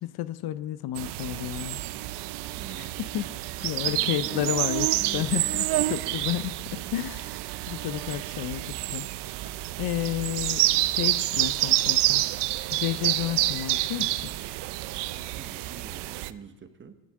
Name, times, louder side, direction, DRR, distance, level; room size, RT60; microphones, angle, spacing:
voice 1, 0.0-1.8 2.8-3.3 3.6-4.9 5.1-5.7 5.9-9.1 9.8-12.3 12.7-14.3, left 13 dB, 60° left, 15 dB, 0.7 m, -31 dB
sound 1, 1.0-16.3, right 17 dB, 65° right, 0.6 m, -28 dB
voice 2, 2.6-2.9 3.8-4.5 4.9-6.2 15.2-16.9, right 6 dB, 25° right, 9 dB, 1.0 m, -44 dB
18.5 x 11.5 x 3.7 m, 1.3 s
cardioid pair, 105°, 43 cm